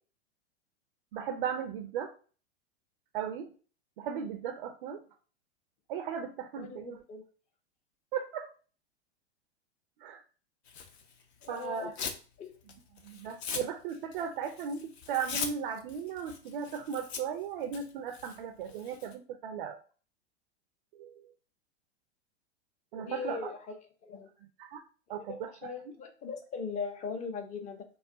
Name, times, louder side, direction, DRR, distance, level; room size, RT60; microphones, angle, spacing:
voice 1, 1.1-2.1 3.1-3.5 4.0-5.0 5.9-7.0 8.1-8.5 10.0-10.2 11.5-11.9 13.0-19.8 21.0-21.3 22.9-23.5 24.4-24.8 25.1-25.5, right 7 dB, 55° right, 6 dB, 0.5 m, -36 dB
voice 2, 6.6-7.2 11.4-11.9 12.4-12.5 23.0-23.6 24.0-24.3 25.3-27.8, left 5 dB, 20° left, 4 dB, 0.6 m, -39 dB
Tearing, 10.7-12.2 12.6-19.1, left 6 dB, 70° left, 0.7 m, -41 dB
2.3 x 2.2 x 3.6 m, 0.38 s
hypercardioid pair, 105°, 33 cm